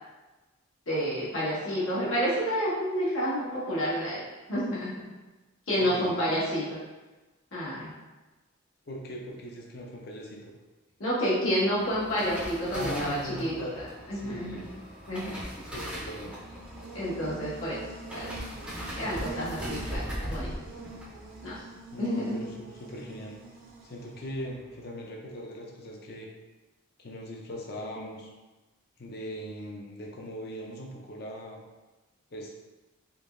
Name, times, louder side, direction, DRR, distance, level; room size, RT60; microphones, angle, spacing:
voice 1, 0.9-4.2 4.5-4.9 5.7-6.8 7.5-7.9 11.0-13.5 14.1-14.6 15.1-15.3 16.9-17.8 18.1-18.3 19.0-20.5 21.4-21.6 22.0-22.3, equal, 80° left, -8 dB, 1.3 m, -29 dB
voice 2, 5.8-6.1 8.9-10.5 12.7-13.7 14.1-14.6 15.7-16.3 21.9-23.3 23.8-26.3 27.0-28.3 29.0-31.6 32.3-32.5, equal, 50° left, 0 dB, 0.5 m, -39 dB
sound 1, 11.7-23.2 23.4-23.8 24.1-24.5 24.8-24.9, equal, 5° right, 0.5 m, -40 dB
Buzz, 16.2-24.3, right 3 dB, 80° right, 0.5 m, -45 dB
3.7 x 2.9 x 2.5 m, 1.2 s
head